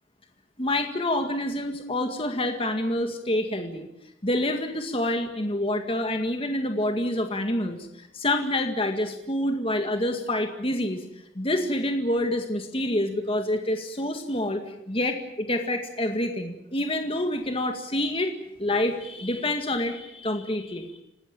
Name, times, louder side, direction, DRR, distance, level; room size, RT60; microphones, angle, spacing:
voice 1, 0.6-3.9 4.2-11.0 11.4-18.3 18.6-21.0, left 1 dB, 30° left, 5 dB, 2.0 m, -27 dB
28.0 x 18.5 x 9.1 m, 0.85 s
head